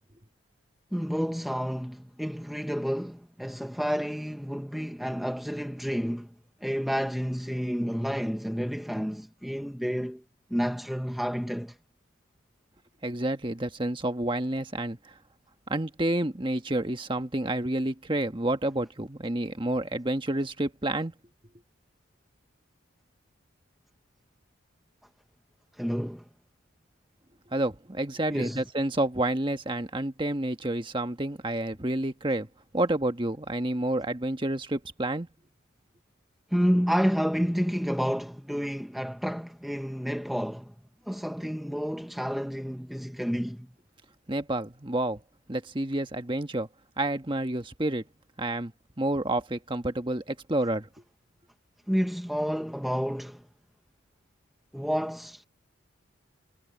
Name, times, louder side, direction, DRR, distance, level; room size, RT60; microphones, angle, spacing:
voice 1, 0.9-6.3 6.6-10.2 10.5-11.8 25.7-26.2 28.3-28.6 36.5-40.7 41.1-43.7 51.9-53.4 54.7-55.5, equal, ahead, 0.7 m, -30 dB
voice 2, 13.0-15.2 15.7-21.1 27.5-32.5 32.7-35.3 44.3-45.2 45.5-46.7 47.0-48.0 48.4-50.9, right 1 dB, 25° right, 1.4 m, -29 dB
head